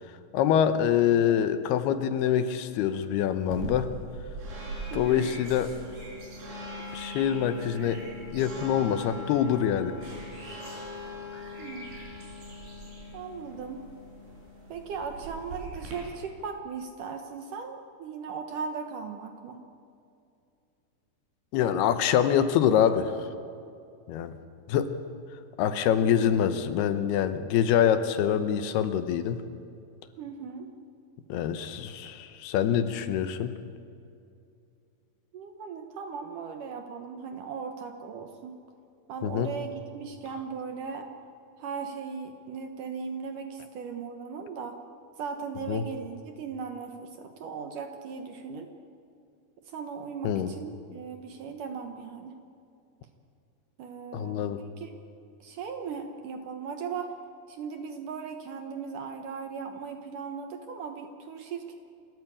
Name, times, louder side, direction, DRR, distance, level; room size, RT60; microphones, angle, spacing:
voice 1, 0.3-3.9 4.9-5.7 6.9-8.0 8.3-9.9 21.5-23.3 24.1-24.4 24.7-24.9 25.6-29.4 31.3-33.6 39.2-39.5 45.7-45.8 50.2-50.5 54.1-54.6, left 9 dB, 75° left, 10 dB, 2.8 m, -25 dB
sound 1, 3.5-15.9, equal, 85° right, 7.4 m, -41 dB
voice 2, 4.9-5.3 11.6-12.0 13.1-13.9 14.7-19.6 25.9-26.3 30.2-30.7 35.3-38.6 39.1-41.1 41.6-44.8 45.2-48.7 49.6-52.4 53.8-54.9 55.4-57.1 57.5-61.7, right 5 dB, 65° right, 6 dB, 2.2 m, -38 dB
28.5 x 14.0 x 8.5 m, 2.5 s
omnidirectional pair, 4.8 m